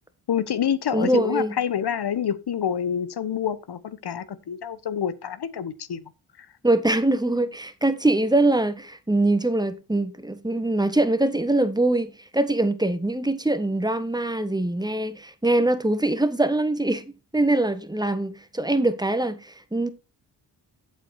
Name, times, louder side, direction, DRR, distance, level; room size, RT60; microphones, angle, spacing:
voice 1, 0.3-6.0 6.4-6.5, left 8 dB, 50° left, 1.1 m, -27 dB
voice 2, 0.9-1.6 6.6-19.9, right 2 dB, 10° right, 1.5 m, -23 dB
8.3 x 7.4 x 4.3 m
supercardioid pair, 40°, 49 cm